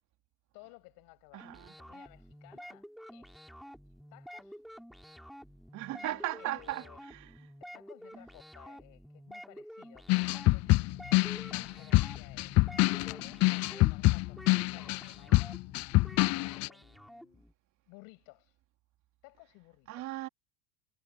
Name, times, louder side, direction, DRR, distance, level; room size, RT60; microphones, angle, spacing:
voice 1, 0.5-1.5 1.8-3.4 4.1-4.6 6.0-7.0 7.6-10.8 11.5-15.6 16.3-17.4 17.9-18.6 19.2-20.2, left 28 dB, 60° left, 7.2 m, -57 dB
voice 2, 1.3-1.7 5.7-7.5 19.9-20.3, right 15 dB, 50° right, 3.5 m, -38 dB
sound 1, 1.4-17.5, equal, ahead, 5.1 m, -50 dB
sound 2, 10.1-16.7, left 22 dB, 45° left, 0.6 m, -26 dB
supercardioid pair, 115°, 37 cm